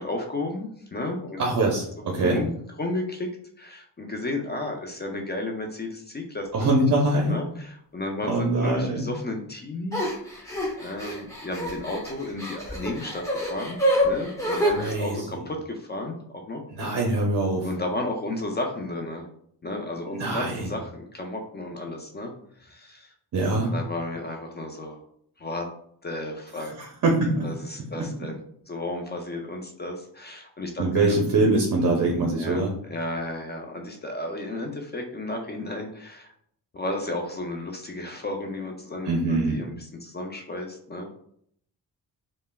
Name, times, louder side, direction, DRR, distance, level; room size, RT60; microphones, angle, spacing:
voice 1, 0.0-1.4 2.2-2.5 2.8-3.3 3.6-6.5 7.1-13.8 14.0-16.9 17.6-19.3 19.6-22.3 22.6-23.1 23.6-25.0 25.4-25.7 26.0-26.7 27.4-28.4 28.7-31.2 32.4-32.6 32.9-36.3 36.7-41.1, left 2 dB, 25° left, 2 dB, 0.4 m, -33 dB
voice 2, 1.4-2.4 6.5-7.4 8.3-9.1 14.6-15.4 16.8-17.7 20.1-20.7 23.3-23.7 26.5-27.5 27.9-28.3 30.8-32.7 39.0-39.6, right 2 dB, 45° right, 0 dB, 0.6 m, -24 dB
sound 1, 9.9-14.9, equal, 5° left, 0.8 m, -27 dB
3.2 x 2.1 x 2.2 m, 0.66 s
cardioid pair, 80°, 42 cm